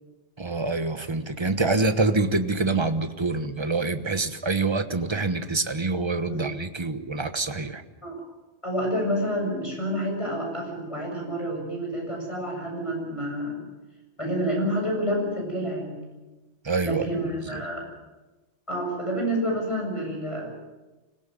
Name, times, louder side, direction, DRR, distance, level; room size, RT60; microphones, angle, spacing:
voice 1, 0.4-7.8 16.6-17.0 17.5-17.6, right 3 dB, 25° right, 9 dB, 1.2 m, -26 dB
voice 2, 8.6-13.6 14.2-16.0 16.8-17.9 18.7-20.5, equal, 25° left, 0 dB, 7.5 m, -28 dB
25.5 x 17.0 x 7.8 m, 1.1 s
omnidirectional pair, 1.2 m